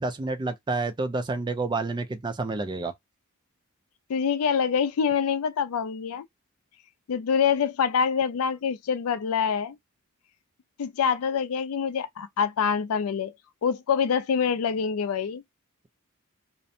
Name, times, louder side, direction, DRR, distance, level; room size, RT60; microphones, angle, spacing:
voice 1, 0.0-2.9, right 3 dB, 20° right, 0.3 m, -29 dB
voice 2, 4.1-6.2 7.1-9.8 10.8-13.3 13.6-15.4, left 6 dB, 75° left, 0.4 m, -25 dB
2.5 x 2.1 x 2.6 m
head